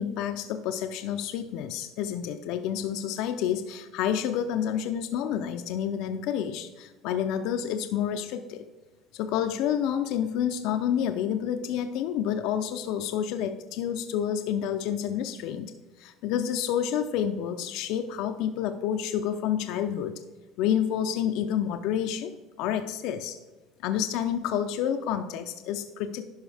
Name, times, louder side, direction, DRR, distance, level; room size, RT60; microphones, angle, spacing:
voice 1, 0.0-8.6 9.1-20.1 20.6-22.3 22.6-23.4 23.8-26.2, left 9 dB, 70° left, 8 dB, 0.5 m, -29 dB
11.0 x 5.5 x 3.4 m, 1.2 s
cardioid pair, 150°, 0 cm